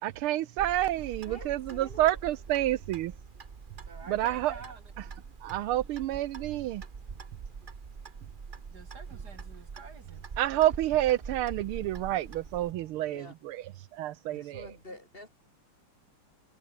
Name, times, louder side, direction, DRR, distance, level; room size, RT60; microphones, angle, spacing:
voice 1, 0.0-3.1 4.1-4.6 5.4-6.8 10.4-14.7, right 14 dB, 80° right, 1.6 m, -29 dB
Clock, 0.6-12.7, right 5 dB, 35° right, 0.9 m, -44 dB
voice 2, 1.3-2.2 4.0-4.2 13.1-13.3 14.3-15.3, left 1 dB, 25° left, 2.2 m, -48 dB
voice 3, 3.9-5.1 8.7-10.3 14.9-15.0, right 4 dB, 50° right, 3.0 m, -49 dB
omnidirectional pair, 2.4 m